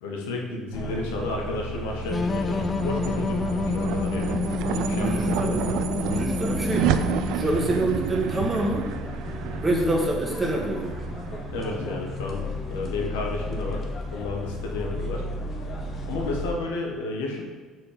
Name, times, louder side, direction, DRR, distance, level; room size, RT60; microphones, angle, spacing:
voice 1, 0.0-4.4 4.7-5.6 11.5-15.2 16.0-17.4, left 2 dB, 90° left, 0 dB, 1.3 m, -32 dB
sound 1, 0.7-16.5, equal, 45° left, 1.1 m, -34 dB
sound 2, 1.8-12.4, right 9 dB, 70° right, 0.4 m, -31 dB
sound 3, 2.1-7.7, left 4 dB, 30° left, 0.4 m, -28 dB
voice 2, 5.0-5.6 6.1-6.9 7.3-8.9 9.6-10.9, right 1 dB, 20° right, -2 dB, 1.6 m, -26 dB
6.3 x 4.3 x 5.0 m, 1.4 s
supercardioid pair, 80°, 0 cm